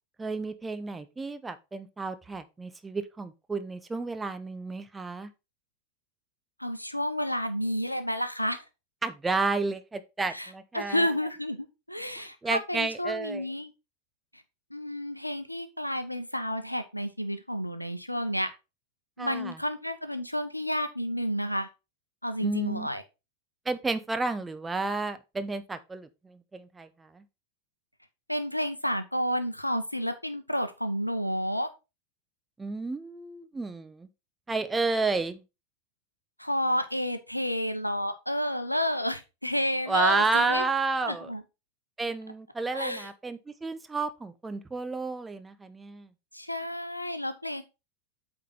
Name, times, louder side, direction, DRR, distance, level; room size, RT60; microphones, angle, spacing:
voice 1, 0.2-5.3 9.0-11.1 12.4-13.4 19.2-19.6 22.4-22.9 23.7-27.2 32.6-34.1 34.5-35.4 39.9-41.3 42.0-46.1, right 3 dB, 10° right, 0.8 m, -31 dB
voice 2, 6.6-8.6 10.3-13.7 14.7-18.5 19.2-21.7 22.2-23.0 28.3-31.7 36.4-40.6 41.0-41.4 42.7-43.1 46.3-47.6, equal, 90° left, 0.8 m, -30 dB
8.4 x 3.9 x 4.3 m
figure-of-eight pair, 90°, 0 cm